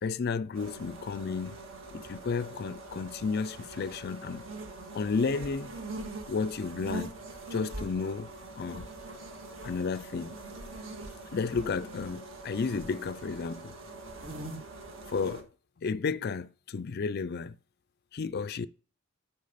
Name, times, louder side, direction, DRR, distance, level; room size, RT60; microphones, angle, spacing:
voice 1, 0.0-1.5 1.9-4.4 4.9-5.7 6.3-7.1 7.5-8.3 8.6-8.9 9.6-10.4 11.3-13.8 15.1-15.5 15.8-17.5 18.1-18.7, left 5 dB, 45° left, 0.4 m, -32 dB
sound 1, 0.5-15.4, right 2 dB, 60° right, 1.7 m, -43 dB
9.7 x 5.8 x 4.1 m
head